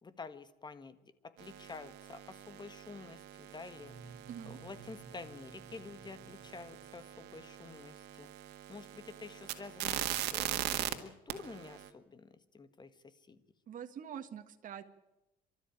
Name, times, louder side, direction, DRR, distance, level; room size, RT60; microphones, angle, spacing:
voice 1, 0.0-3.9 4.5-13.4, left 4 dB, 25° left, 12 dB, 1.6 m, -49 dB
sound 1, 1.4-10.9 11.3-11.9, right 13 dB, 85° right, 1.8 m, -42 dB
sound 2, 3.7-7.4, right 4 dB, ahead, 5.8 m, -56 dB
voice 2, 4.3-4.6 13.7-14.9, right 8 dB, 50° right, 6 dB, 1.7 m, -45 dB
29.0 x 13.0 x 9.0 m, 0.96 s
cardioid pair, 110°, 17 cm